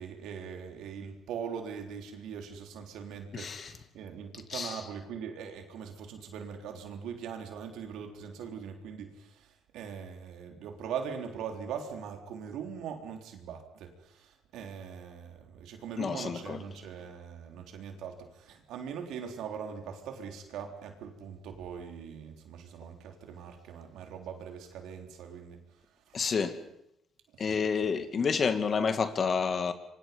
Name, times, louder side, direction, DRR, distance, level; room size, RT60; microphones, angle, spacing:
voice 1, 0.0-25.6 25.9-26.3 27.3-27.9, right 7 dB, 80° right, 4 dB, 3.6 m, -41 dB
voice 2, 3.3-3.7 4.5-4.8 16.0-16.6 26.1-26.5 27.4-29.7, left 5 dB, 45° left, 9 dB, 2.3 m, -29 dB
26.5 x 24.0 x 5.4 m, 0.81 s
cardioid pair, 85°, 0 cm